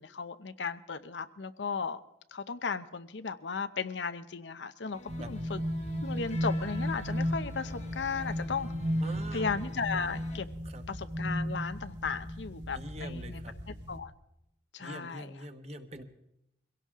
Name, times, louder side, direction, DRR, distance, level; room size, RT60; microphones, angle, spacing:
voice 1, 0.0-2.0 2.3-5.6 6.0-8.7 9.3-10.5 10.9-13.4 13.7-14.1 14.7-15.3, left 5 dB, 85° left, 11 dB, 0.7 m, -35 dB
sound 1, 4.9-10.4, left 2 dB, 40° left, 1.2 m, -50 dB
sound 2, 5.1-14.0, equal, 75° right, 2.4 m, -35 dB
voice 2, 9.0-9.5 10.6-10.8 12.7-13.5 14.8-16.0, right 1 dB, 35° right, 7 dB, 1.2 m, -44 dB
23.5 x 17.0 x 3.7 m, 0.81 s
head